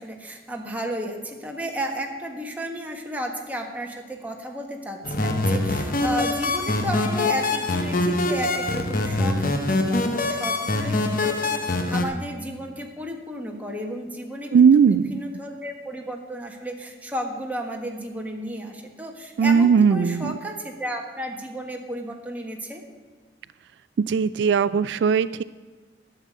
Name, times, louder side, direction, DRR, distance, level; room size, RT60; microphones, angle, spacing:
voice 1, 0.0-22.8, equal, 10° right, 1 dB, 1.4 m, -33 dB
sound 1, 5.0-12.1, left 2 dB, 50° left, 1.0 m, -24 dB
voice 2, 14.5-15.1 19.4-20.3 24.1-25.4, right 6 dB, 75° right, 16 dB, 0.3 m, -18 dB
11.0 x 6.8 x 8.4 m, 1.4 s
head